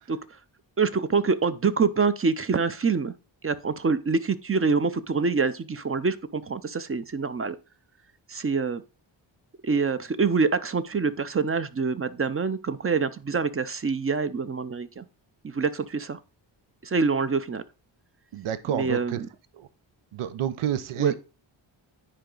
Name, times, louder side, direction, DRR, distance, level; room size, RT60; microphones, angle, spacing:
voice 1, 0.8-3.1 3.4-7.6 8.3-8.8 9.6-15.0 15.4-16.2 16.8-17.6 18.7-19.3 21.0-21.2, right 4 dB, 30° right, 0.6 m, -25 dB
voice 2, 18.3-19.2 19.5-19.7 20.1-21.2, right 10 dB, 85° right, 0.8 m, -29 dB
10.0 x 4.6 x 3.9 m
cardioid pair, 85°, 49 cm